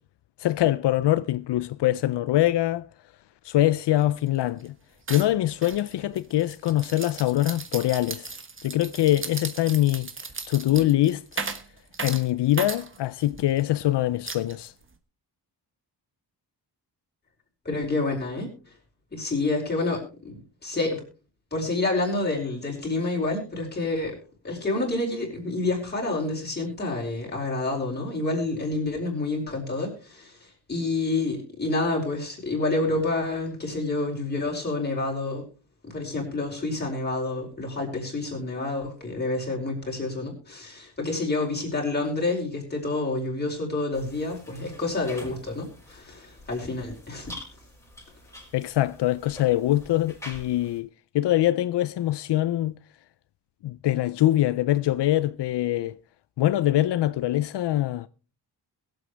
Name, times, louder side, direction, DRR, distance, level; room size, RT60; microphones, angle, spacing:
voice 1, 0.4-2.9 3.4-4.7 5.1-8.3 8.6-10.1 10.5-11.5 12.0-14.7 48.5-50.9 51.1-52.7 53.6-56.0 56.4-58.1, left 14 dB, 85° left, 0.5 m, -23 dB
sound 1, 4.0-4.1 4.3-4.7 5.1-13.6 14.3-15.0, right 4 dB, 30° right, 1.2 m, -37 dB
voice 2, 17.6-18.5 19.1-21.0 21.5-24.1 24.4-35.4 35.8-47.3, left 2 dB, 25° left, 4.9 m, -28 dB
sound 2, 43.9-50.8, left 1 dB, 5° left, 4.4 m, -46 dB
22.0 x 8.0 x 3.3 m
wide cardioid pair, 155°, 41 cm